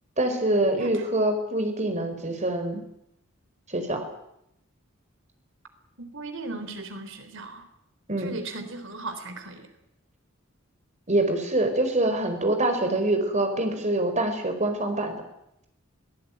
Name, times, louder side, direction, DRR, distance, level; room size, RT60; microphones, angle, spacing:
voice 1, 0.2-2.8 3.7-4.0 8.1-8.3 11.1-15.2, right 1 dB, 35° right, 6 dB, 5.0 m, -25 dB
voice 2, 6.0-7.6 8.2-9.7, right 3 dB, 65° right, 8 dB, 3.8 m, -37 dB
22.5 x 18.5 x 9.4 m, 0.80 s
head